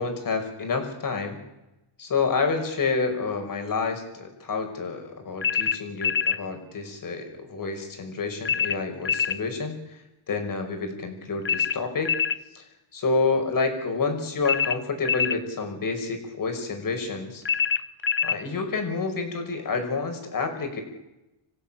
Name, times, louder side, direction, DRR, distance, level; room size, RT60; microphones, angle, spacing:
voice 1, 0.0-1.4 2.0-10.0 10.3-12.1 12.5-12.6 12.9-17.4 18.2-20.8, left 4 dB, 40° left, 5 dB, 5.7 m, -28 dB
sound 1, 5.4-6.4 8.4-9.4 11.4-12.4 14.4-15.4 17.4-18.4, left 7 dB, 25° left, 0.8 m, -25 dB
27.0 x 15.5 x 9.0 m, 0.95 s
cardioid pair, 130°, 48 cm